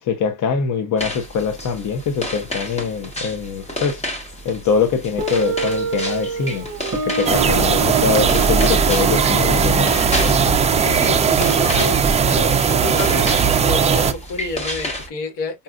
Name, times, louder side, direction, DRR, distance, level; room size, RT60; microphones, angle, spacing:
voice 1, 0.0-4.1 4.4-6.7 6.9-9.9, left 6 dB, 45° left, 0.8 m, -23 dB
sound 1, 1.0-15.1, equal, 15° left, 1.1 m, -31 dB
Guitar, 5.2-11.8, right 4 dB, 40° right, 0.8 m, -28 dB
sound 2, 7.3-14.1, right 6 dB, 20° right, 0.3 m, -17 dB
voice 2, 10.8-12.0 12.3-15.6, left 2 dB, 80° left, 1.7 m, -28 dB
5.5 x 2.4 x 2.4 m
cardioid pair, 125°, 41 cm